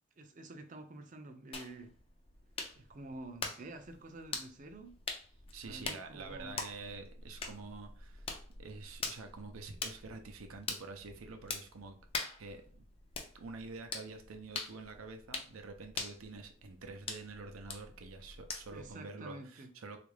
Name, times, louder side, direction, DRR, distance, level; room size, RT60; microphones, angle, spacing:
voice 1, 0.2-1.9 2.8-5.0 5.6-6.6 18.7-19.7, right 2 dB, 40° right, 0.4 m, -49 dB
sound 1, 1.5-18.9, left 4 dB, 25° left, 0.4 m, -44 dB
voice 2, 5.5-8.3 8.6-12.0 12.4-12.9 13.3-20.0, right 3 dB, 85° right, 0.5 m, -47 dB
3.5 x 2.4 x 3.2 m
head